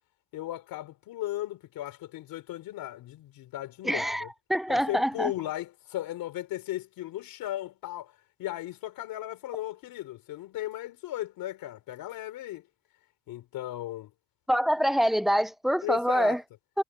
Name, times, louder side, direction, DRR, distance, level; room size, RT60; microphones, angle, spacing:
voice 1, 0.3-4.3 4.7-12.7 13.3-14.1 15.8-16.4, left 14 dB, 85° left, 3.7 m, -36 dB
voice 2, 3.8-5.3 14.5-16.4, equal, ahead, 0.5 m, -25 dB
cardioid pair, 90°, 34 cm